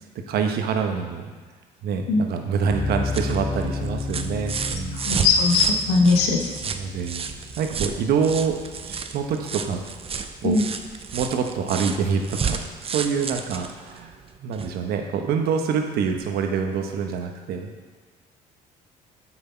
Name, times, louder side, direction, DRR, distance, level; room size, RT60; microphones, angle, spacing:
voice 1, 0.3-1.3 1.8-5.0 6.6-7.3 7.6-8.6 8.8-9.8 10.4-10.6 11.1-12.6 12.9-14.1 14.4-17.7, right 6 dB, 70° right, 4 dB, 1.1 m, -26 dB
sound 1, 2.7-9.8, left 3 dB, 5° right, 1.7 m, -33 dB
sound 2, 2.8-14.8 16.1-16.2, right 6 dB, 35° right, 0.6 m, -32 dB
voice 2, 5.0-6.4 10.4-10.6, left 4 dB, 85° left, 2 dB, 1.2 m, -19 dB
8.0 x 6.1 x 4.5 m, 1.5 s
supercardioid pair, 85°, 17 cm